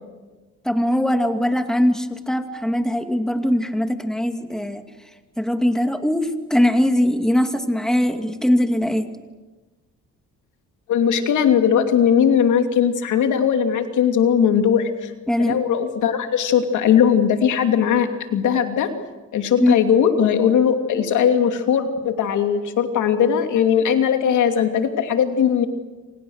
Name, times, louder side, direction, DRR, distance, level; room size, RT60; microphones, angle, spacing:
voice 1, 0.6-4.8 5.4-9.1 15.3-15.6 19.6-19.7, equal, ahead, 6 dB, 2.3 m, -21 dB
voice 2, 10.9-15.1 15.4-18.9 19.3-25.7, left 8 dB, 80° left, 6 dB, 2.8 m, -19 dB
29.0 x 26.5 x 6.5 m, 1.2 s
cardioid pair, 90°, 30 cm